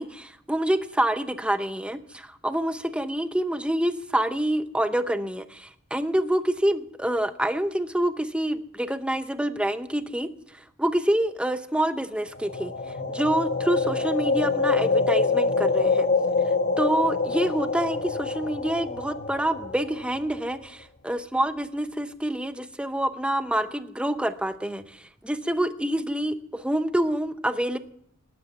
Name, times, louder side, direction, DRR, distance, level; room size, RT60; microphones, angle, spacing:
voice 1, 0.0-10.3 10.8-12.7 13.1-16.1 16.8-25.0 25.2-27.8, right 1 dB, 5° right, 10 dB, 0.8 m, -27 dB
sound 1, 12.4-20.4, left 4 dB, 45° left, 1.1 m, -25 dB
19.0 x 9.6 x 6.8 m, 0.70 s
head